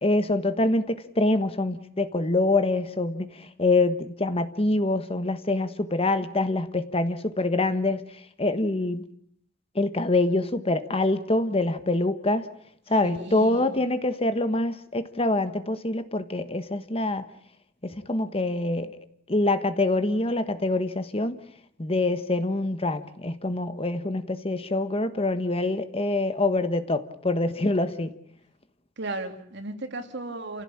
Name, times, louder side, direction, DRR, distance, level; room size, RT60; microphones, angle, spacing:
voice 1, 0.0-8.0 8.4-9.0 9.7-12.5 12.9-17.2 17.8-19.0 19.3-21.4 21.8-28.1, left 2 dB, 30° left, 11 dB, 1.3 m, -25 dB
voice 2, 13.0-13.8 29.0-30.6, right 2 dB, 60° right, 6 dB, 3.0 m, -35 dB
29.5 x 16.0 x 8.8 m, 0.67 s
head